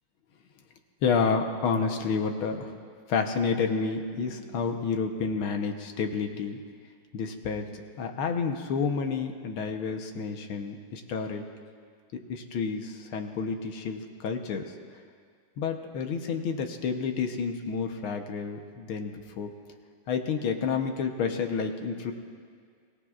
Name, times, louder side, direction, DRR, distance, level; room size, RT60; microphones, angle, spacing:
voice 1, 1.0-2.7 3.1-6.6 7.1-11.5 12.1-14.7 15.6-19.5 20.1-22.1, left 5 dB, 85° left, 5 dB, 1.9 m, -30 dB
23.5 x 17.5 x 2.4 m, 2.1 s
omnidirectional pair, 2.2 m